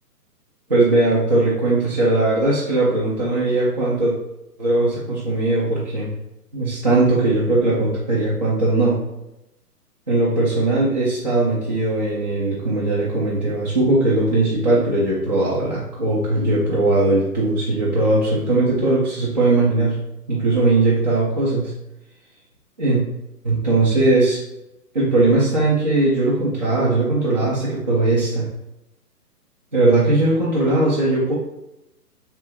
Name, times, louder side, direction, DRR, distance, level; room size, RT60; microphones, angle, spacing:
voice 1, 0.7-4.1 4.6-6.1 6.5-9.0 10.1-20.0 20.3-21.7 22.8-23.0 23.4-24.4 24.9-28.5 29.7-31.3, right 2 dB, 30° right, -8 dB, 0.4 m, -19 dB
3.3 x 2.2 x 2.9 m, 0.89 s
figure-of-eight pair, 135°, 47 cm